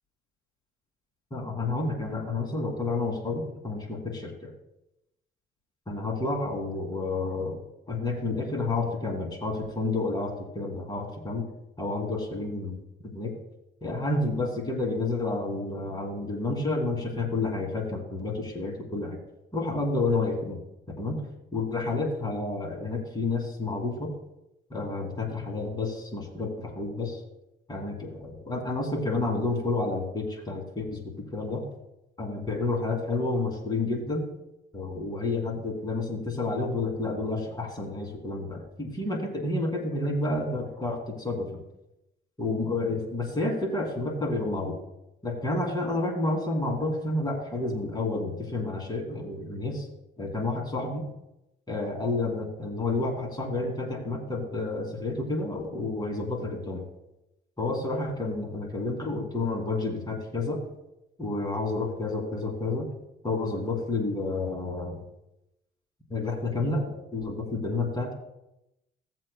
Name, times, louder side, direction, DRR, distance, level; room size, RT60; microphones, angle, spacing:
voice 1, 1.3-4.5 5.9-7.6 7.9-11.4 11.8-13.3 13.8-19.2 19.5-20.6 21.0-21.2 21.5-24.1 24.7-27.2 27.7-31.0 31.3-31.6 32.2-34.2 34.7-41.6 42.4-44.8 45.2-49.9 50.2-51.1 51.7-56.8 57.6-60.6 61.2-62.9 63.2-65.0 66.1-68.1, left 2 dB, 20° left, 0 dB, 2.7 m, -30 dB
17.0 x 7.6 x 2.3 m, 0.88 s
cardioid pair, 90°, 20 cm